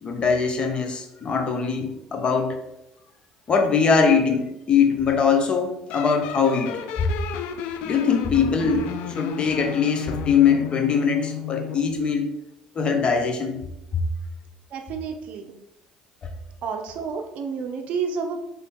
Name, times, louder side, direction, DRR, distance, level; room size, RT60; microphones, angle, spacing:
voice 1, 0.0-2.6 3.5-7.1 7.8-12.3 12.8-13.6 16.2-16.3, left 6 dB, 40° left, 5 dB, 0.8 m, -22 dB
sound 1, 5.9-11.9, left 11 dB, 75° left, 0.3 m, -33 dB
voice 2, 14.7-15.5 16.6-18.4, right 6 dB, 60° right, 4 dB, 0.5 m, -30 dB
3.8 x 2.9 x 3.5 m, 0.85 s
supercardioid pair, 70°, 3 cm